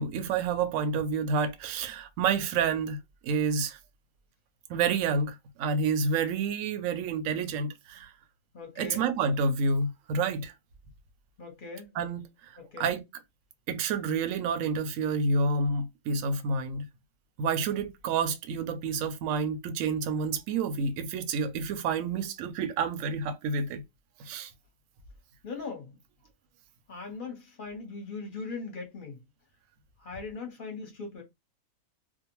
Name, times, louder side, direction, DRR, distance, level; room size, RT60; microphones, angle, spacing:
voice 1, 0.0-3.0 3.2-3.8 4.7-8.1 8.8-10.5 12.0-12.5 12.8-13.0 13.7-16.9 17.4-23.8 24.2-24.5, right 4 dB, 70° right, 0.9 m, -29 dB
voice 2, 8.5-9.1 11.4-11.9 12.6-12.9 25.4-26.0 26.9-29.2 30.0-31.2, left 4 dB, 40° left, 0.8 m, -40 dB
2.5 x 2.1 x 2.9 m
omnidirectional pair, 1.6 m